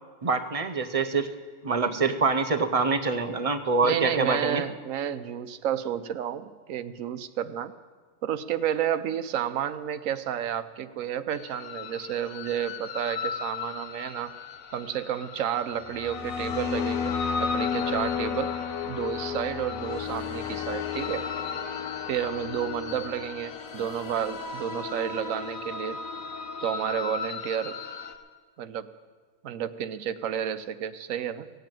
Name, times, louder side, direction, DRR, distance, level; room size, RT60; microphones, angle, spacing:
voice 1, 0.2-1.3 1.6-4.6, right 4 dB, 40° right, 10 dB, 0.5 m, -25 dB
voice 2, 3.8-7.7 8.2-14.3 14.7-18.5 18.8-21.3 22.1-26.0 26.6-27.8 28.6-28.9 29.4-31.5, right 9 dB, 80° right, 12 dB, 1.1 m, -31 dB
sound 1, 11.3-28.1, left 6 dB, 80° left, 1.4 m, -33 dB
16.5 x 8.0 x 9.0 m, 1.5 s
omnidirectional pair, 1.4 m